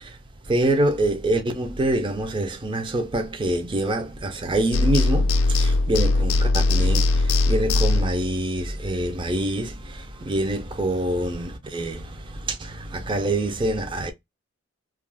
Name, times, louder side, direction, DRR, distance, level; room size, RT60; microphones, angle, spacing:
voice 1, 0.5-14.1, right 1 dB, 25° right, 0.4 m, -26 dB
sound 1, 4.7-8.3, left 2 dB, 85° left, 0.3 m, -20 dB
2.3 x 2.2 x 3.3 m
head